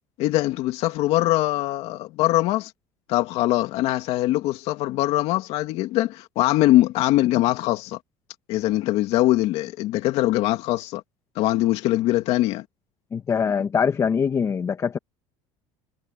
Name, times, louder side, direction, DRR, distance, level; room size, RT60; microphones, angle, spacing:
voice 1, 0.2-2.7 3.1-8.0 8.5-11.0 11.4-12.7, left 16 dB, 60° left, 2.4 m, -22 dB
voice 2, 13.1-15.0, left 6 dB, 25° left, 1.5 m, -23 dB
cardioid pair, 135°, 12 cm